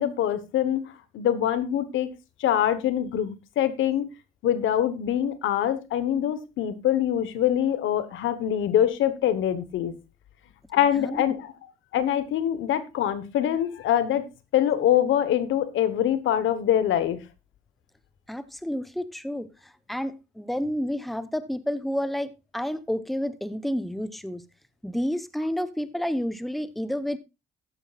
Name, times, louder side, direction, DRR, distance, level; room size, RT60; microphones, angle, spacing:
voice 1, 0.0-2.1 2.4-4.1 4.4-10.0 10.7-11.5 11.9-14.3 14.5-17.2, left 10 dB, 80° left, 13 dB, 1.2 m, -24 dB
voice 2, 10.8-11.2 18.3-24.4 24.8-27.2, equal, ahead, 13 dB, 0.9 m, -30 dB
14.5 x 10.0 x 2.4 m, 0.25 s
cardioid pair, 90°, 20 cm